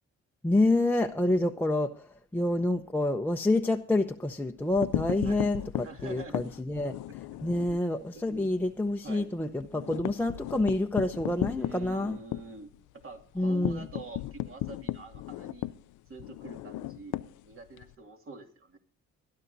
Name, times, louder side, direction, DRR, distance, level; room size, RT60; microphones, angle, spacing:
voice 1, 0.4-2.1 2.3-6.9 7.4-12.2 13.4-13.8, left 2 dB, 5° left, 3 dB, 0.7 m, -28 dB
sound 1, 4.6-7.8 8.2-8.4 8.7-8.8 9.1-17.9, left 15 dB, 85° left, 0.5 m, -36 dB
voice 2, 5.8-6.5 7.1-7.8 8.1-8.5 9.0-9.3 11.6-12.7 13.0-15.7 16.1-17.2 17.4-18.8, right 3 dB, 45° right, 3 dB, 2.4 m, -46 dB
21.5 x 11.5 x 2.7 m, 0.42 s
cardioid pair, 90°, 30 cm